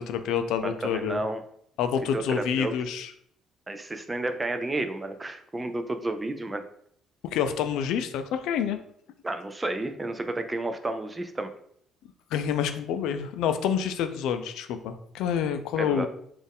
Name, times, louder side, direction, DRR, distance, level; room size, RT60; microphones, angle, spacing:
voice 1, 0.0-1.2 1.8-3.1 7.3-8.8 12.3-16.1, left 8 dB, 80° left, 9 dB, 0.4 m, -28 dB
voice 2, 0.6-1.4 2.1-2.7 3.7-6.6 9.2-11.5 15.8-16.1, right 2 dB, 15° right, 8 dB, 0.4 m, -31 dB
4.2 x 2.4 x 3.5 m, 0.67 s
cardioid pair, 130°, 0 cm